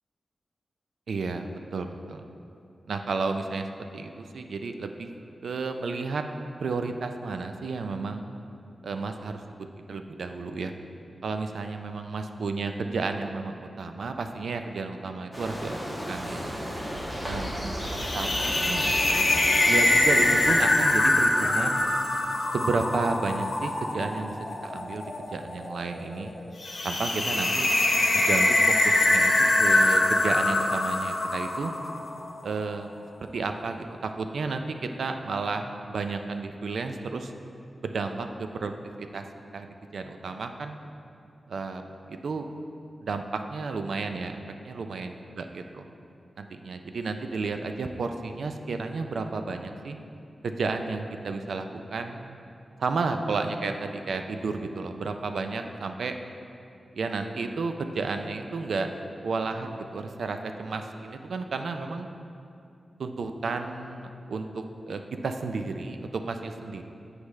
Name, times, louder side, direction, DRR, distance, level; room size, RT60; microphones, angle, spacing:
voice 1, 1.1-2.3 2.9-3.7 3.9-5.1 5.4-6.2 6.6-8.3 8.8-9.4 9.9-10.7 11.2-15.8 16.1-16.4 17.2-19.3 19.6-21.9 22.5-24.4 24.6-26.3 26.8-27.7 28.1-28.6 28.8-29.3 29.6-31.7 32.4-33.0 33.3-37.3 37.8-38.7 39.0-39.3 39.5-40.8 41.5-42.5 43.0-45.8 46.4-50.0 50.4-52.4 52.8-56.2 57.0-58.9 59.2-62.1 63.0-66.8, right 4 dB, 85° right, 6 dB, 0.3 m, -32 dB
sound 1, 15.3-20.5, equal, 15° right, 1.0 m, -33 dB
sound 2, 17.9-32.2, left 2 dB, 55° left, 0.7 m, -24 dB
8.2 x 4.7 x 3.2 m, 2.6 s
wide cardioid pair, 145°, 0 cm